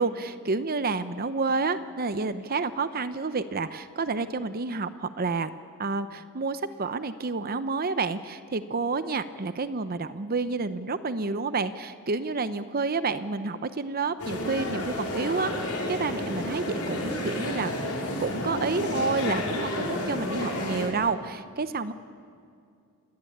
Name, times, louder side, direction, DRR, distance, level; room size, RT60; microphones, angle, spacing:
voice 1, 0.0-5.5 5.8-17.7 18.2-21.9, right 4 dB, 45° right, 12 dB, 0.8 m, -29 dB
sound 1, 14.2-20.9, left 1 dB, 85° left, 5.2 m, -31 dB
29.0 x 20.5 x 8.7 m, 2.3 s
head